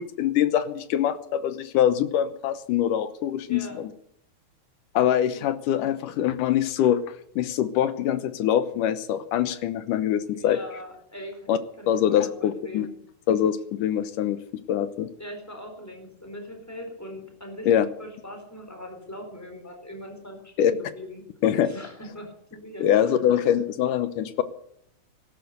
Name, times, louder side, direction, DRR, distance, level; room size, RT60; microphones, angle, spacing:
voice 1, 0.0-3.9 4.9-7.0 7.4-10.6 11.5-11.6 11.9-12.9 13.3-14.4 14.7-15.1 17.7-17.8 20.6-20.7 21.4-21.7 22.8-24.4, left 10 dB, 70° left, 12 dB, 2.0 m, -23 dB
voice 2, 3.5-3.8 5.3-5.4 10.2-11.5 11.8-12.9 15.1-17.7 18.0-21.2 21.6-23.2, left 1 dB, 5° left, 4 dB, 3.6 m, -40 dB
17.0 x 12.5 x 6.7 m, 0.71 s
omnidirectional pair, 4.7 m